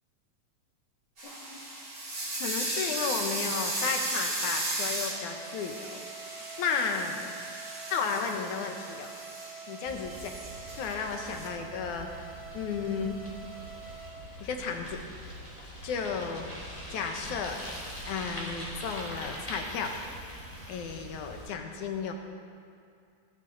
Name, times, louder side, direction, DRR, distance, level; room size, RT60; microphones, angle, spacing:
voice 1, 1.2-1.6 2.4-6.0 6.6-7.3 7.9-9.1 9.7-10.3 10.7-13.2 14.4-15.0 15.8-16.5 16.9-17.6 18.1-20.0 20.7-22.1, left 5 dB, 65° left, 4 dB, 2.4 m, -33 dB
sound 1, 1.2-11.5, right 1 dB, 30° right, 3.7 m, -36 dB
sound 2, 5.1-14.1, right 6 dB, 50° right, 2.7 m, -46 dB
Bicycle, 9.9-21.5, equal, 10° left, 3.2 m, -43 dB
18.0 x 16.5 x 4.0 m, 2.4 s
omnidirectional pair, 4.0 m